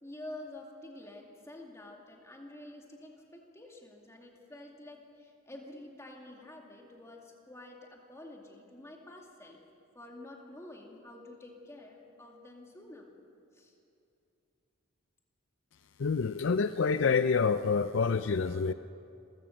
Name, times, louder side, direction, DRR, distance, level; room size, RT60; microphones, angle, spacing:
voice 1, 0.0-9.6 9.9-13.1 13.5-13.7, left 1 dB, 15° left, 0 dB, 2.3 m, -49 dB
voice 2, 16.0-18.7, left 5 dB, 60° left, 12 dB, 0.5 m, -27 dB
27.5 x 15.5 x 6.5 m, 2.6 s
head